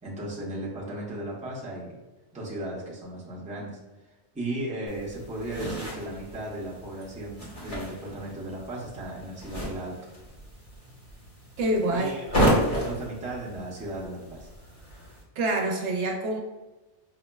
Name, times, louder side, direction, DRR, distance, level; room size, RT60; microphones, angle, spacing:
voice 1, 0.0-2.0 2.3-3.8 4.3-10.0 11.9-12.4 12.7-14.5, right 1 dB, 10° right, -6 dB, 0.6 m, -36 dB
sound 1, 4.9-15.2, equal, 30° left, 1.0 m, -32 dB
voice 2, 11.6-12.1 15.4-16.4, right 1 dB, 75° right, 1 dB, 0.9 m, -26 dB
5.4 x 2.1 x 2.2 m, 1.1 s
omnidirectional pair, 1.2 m